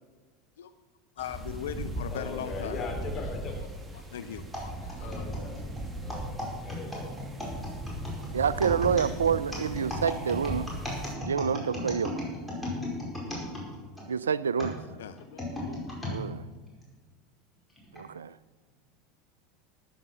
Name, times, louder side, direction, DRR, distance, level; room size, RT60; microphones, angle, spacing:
voice 1, 1.2-2.8 3.2-3.7 3.9-5.2 15.0-16.2, left 9 dB, 70° left, 0.4 m, -40 dB
sound 1, 1.2-11.1, right 1 dB, 20° right, 1.6 m, -38 dB
voice 2, 2.1-3.6 5.0-5.7 6.0-6.4 6.6-7.1, left 4 dB, 35° left, 3.5 m, -39 dB
sound 2, 4.5-14.1 14.6-16.2 16.8-16.9 17.8-18.0, left 1 dB, ahead, 5.0 m, -36 dB
voice 3, 8.3-10.7 11.2-12.1 14.1-14.8 16.1-16.4 17.9-18.4, right 7 dB, 80° right, 0.3 m, -28 dB
13.5 x 9.5 x 5.8 m
figure-of-eight pair, 80°, 0 cm